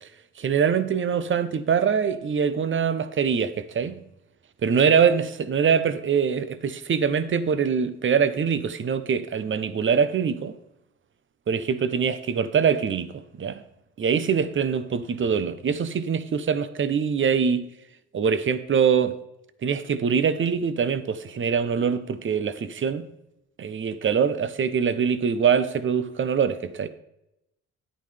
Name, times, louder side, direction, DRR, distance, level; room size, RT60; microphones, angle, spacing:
voice 1, 0.4-4.0 4.6-10.5 11.5-13.6 14.0-17.7 18.1-19.2 19.6-23.0 23.6-26.9, right 7 dB, 40° right, 0.9 m, -23 dB
11.0 x 8.9 x 3.4 m
cardioid pair, 90°, 30 cm